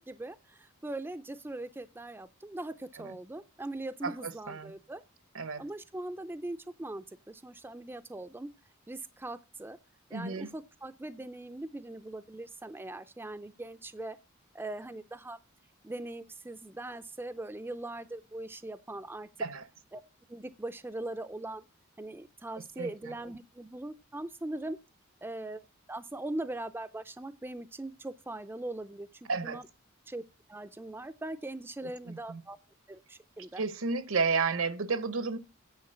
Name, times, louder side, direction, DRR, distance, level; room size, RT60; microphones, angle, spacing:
voice 1, 0.0-5.0 5.6-8.5 8.9-9.8 10.1-14.2 14.5-15.4 15.8-19.3 19.9-20.0 20.3-21.6 22.0-24.8 25.2-25.6 25.9-29.6 30.1-30.2 30.5-32.6 32.9-33.6, right 2 dB, 10° right, 0.4 m, -40 dB
voice 2, 4.0-4.7 5.3-5.6 10.1-10.5 19.4-19.7 22.8-23.1 29.3-29.6 31.8-32.4 33.6-35.4, right 4 dB, 70° right, 0.8 m, -32 dB
9.6 x 4.6 x 7.8 m
head